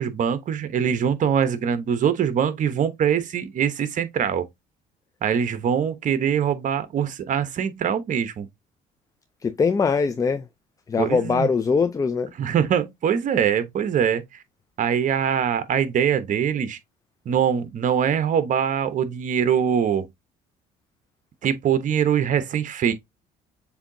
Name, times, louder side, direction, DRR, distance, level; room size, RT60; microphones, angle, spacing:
voice 1, 0.0-4.5 5.2-8.5 11.0-11.5 12.4-14.2 14.8-16.8 17.3-20.1 21.4-22.9, right 8 dB, 50° right, 0.9 m, -23 dB
voice 2, 9.4-10.5 10.9-12.3, left 5 dB, 20° left, 0.4 m, -22 dB
6.9 x 2.7 x 2.6 m
cardioid pair, 110°, 17 cm